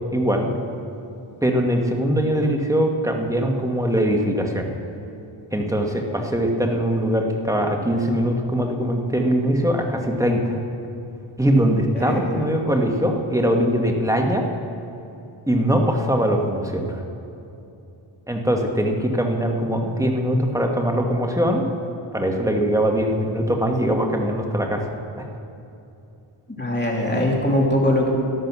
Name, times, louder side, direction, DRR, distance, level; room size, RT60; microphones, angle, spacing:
voice 1, 0.1-0.5 1.4-4.7 5.5-10.6 11.4-14.4 15.5-17.0 18.3-21.6 22.1-24.9 25.2-25.3, equal, 5° right, 2 dB, 1.7 m, -21 dB
voice 2, 11.9-12.3 26.5-28.1, left 1 dB, 20° left, -2 dB, 3.0 m, -21 dB
14.0 x 11.5 x 6.2 m, 2.8 s
wide cardioid pair, 70°, 50 cm